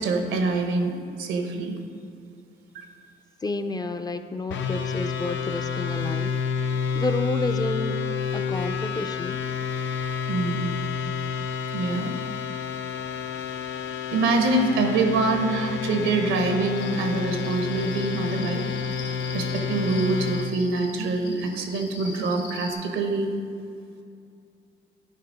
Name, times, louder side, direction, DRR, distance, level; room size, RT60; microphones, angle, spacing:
voice 1, 0.0-1.8 2.7-2.8 10.3-10.8 11.7-12.2 14.1-18.7 19.3-23.3, right 3 dB, 90° right, 5 dB, 1.1 m, -25 dB
voice 2, 3.4-6.4 6.9-8.0 8.3-9.4, left 2 dB, 20° left, 8 dB, 0.4 m, -30 dB
sound 1, 4.5-20.5, left 6 dB, 70° left, 0.7 m, -29 dB
Cricket, 16.8-22.7, left 4 dB, 90° left, 1.8 m, -43 dB
10.5 x 4.3 x 5.3 m, 2.5 s
cardioid pair, 90°, 20 cm